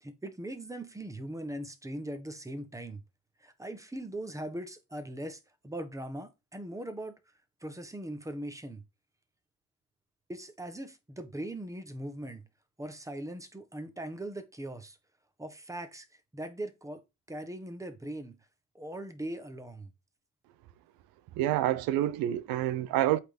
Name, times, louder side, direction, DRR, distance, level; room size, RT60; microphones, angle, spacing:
voice 1, 0.0-3.0 3.4-7.1 7.6-8.8 10.3-12.5 12.8-15.0 15.4-16.1 16.3-17.0 17.3-18.4 18.7-19.9, right 1 dB, 10° right, 1.4 m, -40 dB
voice 2, 21.4-23.2, right 13 dB, 85° right, 0.8 m, -27 dB
8.0 x 4.1 x 5.2 m
cardioid pair, 95°, 34 cm